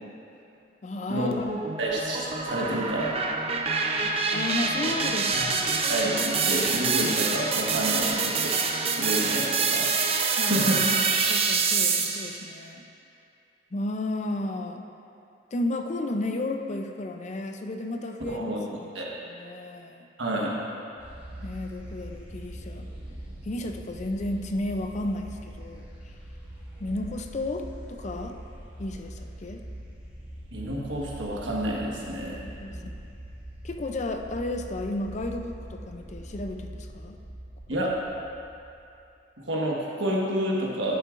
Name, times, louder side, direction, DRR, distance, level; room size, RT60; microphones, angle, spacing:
voice 1, 0.8-1.6 4.3-5.8 10.4-10.7 11.0-12.8 13.7-14.9 15.5-18.9 19.3-20.1 21.4-22.9 23.4-26.1 26.8-28.4 28.8-29.6 32.4-33.1 33.6-37.2 37.7-37.8, left 2 dB, 40° left, 5 dB, 0.5 m, -33 dB
sound 1, 1.3-12.4, right 4 dB, 35° right, 0.5 m, -26 dB
voice 2, 1.8-3.1 5.4-8.6 8.9-9.9 10.4-10.8 18.3-18.6 18.9-19.1 20.2-20.5 30.5-32.4 37.7-38.0 39.4-41.0, right 1 dB, 80° right, -3 dB, 1.4 m, -29 dB
sound 2, 21.0-39.0, right 1 dB, 10° right, 1.4 m, -42 dB
11.0 x 8.4 x 2.5 m, 2.6 s
head